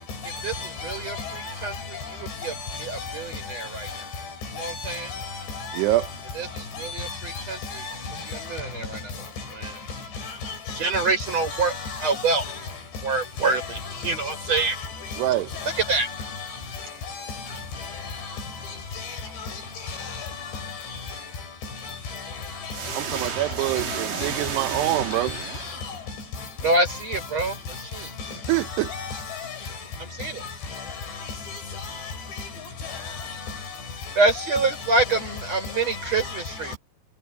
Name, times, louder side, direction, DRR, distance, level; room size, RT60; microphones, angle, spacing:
voice 1, 0.2-1.8 2.3-3.2 3.4-4.0 4.6-5.8 6.8-8.4 10.2-12.6 13.4-14.1 14.5-14.7 15.1-15.2 15.5-16.3 17.1-17.9 19.0-19.2 19.4-19.5 19.9-20.7 22.1-22.2 22.6-22.8 23.2-23.3 23.7-23.8 24.1-24.6 25.1-26.0 28.7-29.6 30.7-30.8 31.5-32.0 32.4-32.5 32.9-33.3 34.4-34.8 35.1-35.2 36.0-36.4 36.7-36.8, left 4 dB, 70° left, 8.0 m, -35 dB
voice 2, 0.8-1.7 2.2-2.5 2.8-3.9 4.6-5.1 6.3-7.8 8.3-9.0 9.5-9.7 10.8-11.7 12.0-12.4 13.0-14.8 15.6-16.1 26.6-28.1 30.0-30.4 34.2-36.8, right 3 dB, 35° right, 6.6 m, -26 dB
sound 1, 22.7-26.1, right 8 dB, 55° right, 3.7 m, -32 dB
voice 3, 23.0-25.3 28.5-28.9, right 16 dB, 75° right, 2.8 m, -25 dB
omnidirectional pair, 5.1 m